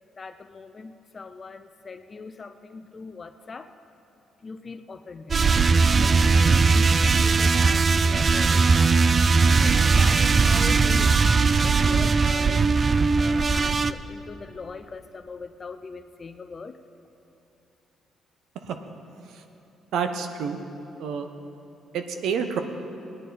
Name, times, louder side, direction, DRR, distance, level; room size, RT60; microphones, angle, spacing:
voice 1, 0.2-3.7 4.4-5.5 6.0-9.0 9.6-11.1 11.6-16.8, left 4 dB, 35° left, 9 dB, 0.5 m, -41 dB
sound 1, 5.3-13.9, right 4 dB, 40° right, 0.4 m, -19 dB
voice 2, 19.9-20.6 21.0-21.3 21.9-22.6, right 6 dB, 80° right, 7 dB, 0.9 m, -28 dB
18.0 x 10.0 x 4.2 m, 3.0 s
cardioid pair, 90°, 0 cm